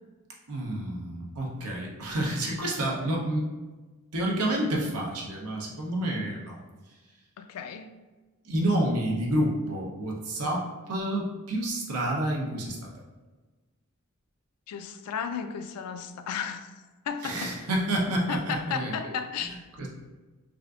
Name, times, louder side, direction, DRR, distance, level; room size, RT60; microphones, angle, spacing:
voice 1, 0.5-3.4 4.1-6.6 8.4-12.9 17.2-19.1 19.4-19.9, right 1 dB, 85° right, -2 dB, 0.7 m, -29 dB
voice 2, 7.4-7.9 14.7-16.7 17.1-17.5 18.3-19.5, left 7 dB, 90° left, 8 dB, 0.3 m, -34 dB
3.5 x 2.5 x 2.4 m, 1.2 s
head